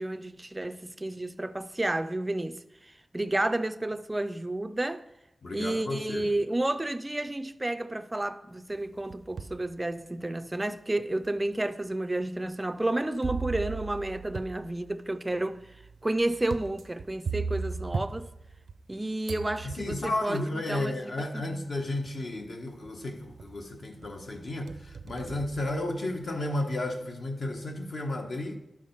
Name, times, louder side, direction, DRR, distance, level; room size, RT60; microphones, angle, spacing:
voice 1, 0.0-2.6 3.1-5.0 5.5-15.6 16.0-18.3 18.9-21.7, right 1 dB, 15° right, 0.4 m, -31 dB
voice 2, 5.4-6.3 19.6-28.6, left 1 dB, 60° left, 1.1 m, -33 dB
sound 1, 8.7-9.6 10.2-10.3 11.2-11.3 13.2-18.9 19.3-20.3 21.4-21.5 22.0-22.5 22.8-23.6 24.0-26.4, right 5 dB, 75° right, 0.5 m, -38 dB
11.5 x 5.0 x 5.6 m
wide cardioid pair, 140°, 0 cm